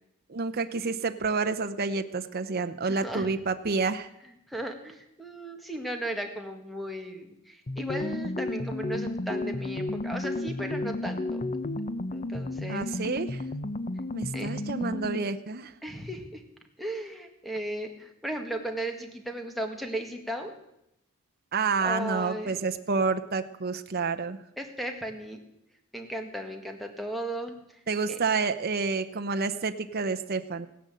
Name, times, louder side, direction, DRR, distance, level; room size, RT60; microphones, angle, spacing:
voice 1, 0.3-4.1 12.7-13.4 14.1-15.7 21.5-24.4 27.9-30.7, right 4 dB, 45° right, 8 dB, 0.7 m, -29 dB
voice 2, 2.9-3.3 4.5-11.4 12.1-12.9 14.3-14.5 15.8-16.4 16.8-20.5 21.8-22.6 24.6-25.4 25.9-27.8 28.1-28.2, right 1 dB, ahead, 4 dB, 1.7 m, -36 dB
sound 1, 7.7-15.3, left 2 dB, 35° left, 0.7 m, -32 dB
16.5 x 10.5 x 7.7 m, 0.82 s
head